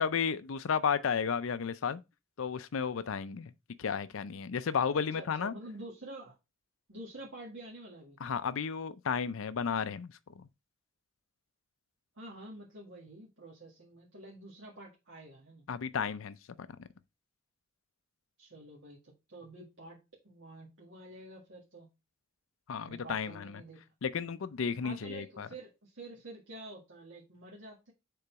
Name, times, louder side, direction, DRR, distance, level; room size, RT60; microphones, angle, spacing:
voice 1, 0.0-2.0 2.4-3.5 3.8-5.5 8.2-10.5 15.7-16.4 16.8-16.9 22.7-23.5 24.0-25.5, left 6 dB, 75° left, 0.5 m, -33 dB
voice 2, 4.9-6.4 6.9-8.2 12.2-15.6 18.4-21.9 22.8-23.9 24.8-27.9, right 1 dB, 65° right, 1.9 m, -48 dB
6.8 x 3.8 x 4.6 m
head